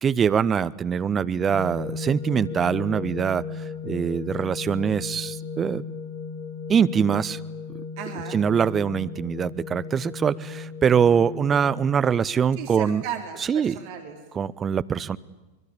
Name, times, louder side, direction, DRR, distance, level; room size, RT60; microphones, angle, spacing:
voice 1, 0.0-3.4 3.8-5.8 6.7-7.4 8.3-13.0 13.5-13.7 14.3-15.2, right 7 dB, 20° right, 15 dB, 0.8 m, -23 dB
sound 1, 1.4-11.8, left 5 dB, 60° left, 4.6 m, -36 dB
voice 2, 8.0-8.4 12.5-14.2, right 8 dB, 45° right, 5 dB, 3.6 m, -35 dB
24.5 x 22.0 x 8.7 m, 1.1 s
figure-of-eight pair, 90°, 0 cm